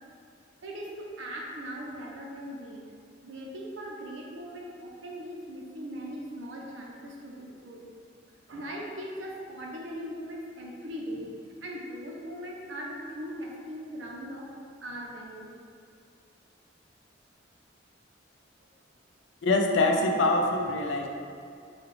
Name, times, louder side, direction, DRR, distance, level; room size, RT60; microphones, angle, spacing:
voice 1, 0.6-2.9 3.2-7.9 8.5-11.3 11.6-14.5 14.8-15.5, equal, 80° right, -2 dB, 0.7 m, -39 dB
voice 2, 19.4-21.1, left 2 dB, 70° left, 2 dB, 0.5 m, -24 dB
6.3 x 2.4 x 3.3 m, 2.4 s
head